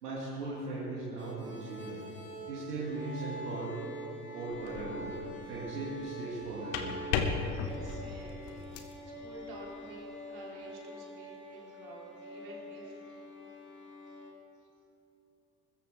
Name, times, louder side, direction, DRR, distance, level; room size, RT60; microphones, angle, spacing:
voice 1, 0.0-2.0 2.5-3.8 4.3-5.1 5.4-7.0, right 2 dB, 75° right, -7 dB, 2.4 m, -38 dB
sound 1, 1.2-14.3, right 1 dB, 25° left, 2.7 m, -45 dB
sound 2, 4.5-5.1 6.4-9.0, left 5 dB, 60° left, 1.4 m, -35 dB
voice 2, 7.5-13.2, right 2 dB, 50° right, -4 dB, 3.9 m, -50 dB
22.0 x 13.5 x 3.5 m, 2.8 s
figure-of-eight pair, 60°, 47 cm